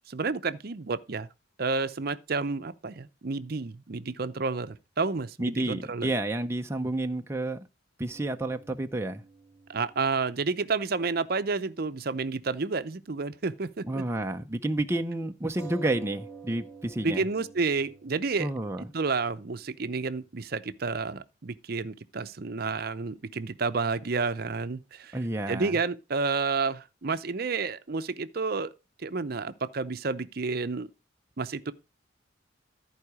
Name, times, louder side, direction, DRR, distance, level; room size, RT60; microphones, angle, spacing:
voice 1, 0.1-1.3 1.6-6.1 9.7-14.0 17.0-18.5 18.9-25.2 25.5-28.7 29.0-30.9 31.4-31.7, right 4 dB, 55° right, 0.6 m, -30 dB
voice 2, 5.4-7.6 8.0-9.2 13.9-17.2 18.4-18.9 25.1-25.8, right 1 dB, 15° right, 0.6 m, -30 dB
sound 1, 8.1-12.0 12.3-12.4 15.6-20.8, right 5 dB, 15° left, 1.6 m, -50 dB
14.0 x 4.8 x 4.8 m
head